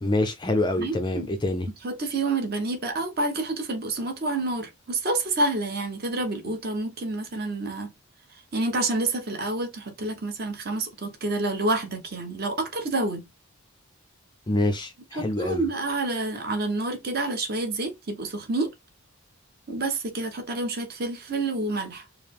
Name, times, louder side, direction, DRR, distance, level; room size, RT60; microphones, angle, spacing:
voice 1, 0.0-1.7 14.5-15.7, left 1 dB, 20° left, 0.4 m, -26 dB
voice 2, 0.8-1.3 1.8-7.9 8.5-13.2 15.1-18.7 19.7-22.0, right 2 dB, 45° right, 0.9 m, -28 dB
4.7 x 2.0 x 3.4 m
head